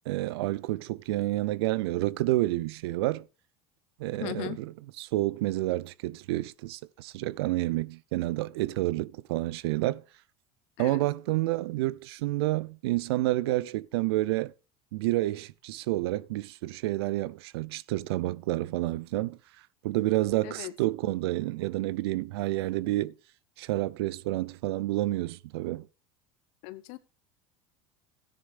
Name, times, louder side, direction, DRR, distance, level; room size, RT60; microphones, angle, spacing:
voice 1, 0.1-3.3 4.0-4.7 5.0-10.0 10.8-14.5 14.9-19.4 19.8-23.1 23.6-25.9, right 17 dB, 80° right, 0.5 m, -29 dB
voice 2, 4.1-4.6 10.8-11.1 20.4-20.7 26.6-27.0, left 18 dB, 65° left, 1.2 m, -38 dB
15.5 x 10.0 x 2.5 m
hypercardioid pair, 90°, 13 cm